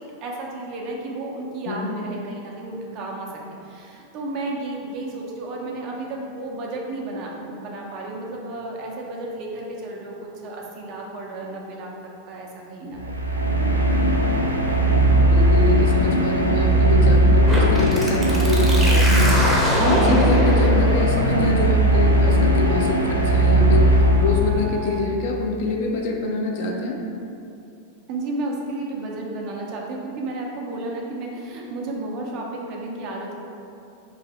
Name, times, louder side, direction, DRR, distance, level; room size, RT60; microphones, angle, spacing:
voice 1, 0.2-3.3 3.6-11.9 12.2-13.2 28.1-33.3, right 2 dB, 40° right, -1 dB, 0.6 m, -32 dB
voice 2, 1.7-2.0 15.2-19.4 19.8-27.0, left 2 dB, 50° left, 0 dB, 0.4 m, -26 dB
sound 1, 12.9-24.7, right 1 dB, 85° right, 0.3 m, -18 dB
sound 2, 17.5-25.0, equal, 5° right, 0.7 m, -26 dB
3.2 x 2.6 x 3.8 m, 2.7 s
figure-of-eight pair, 90°, 0 cm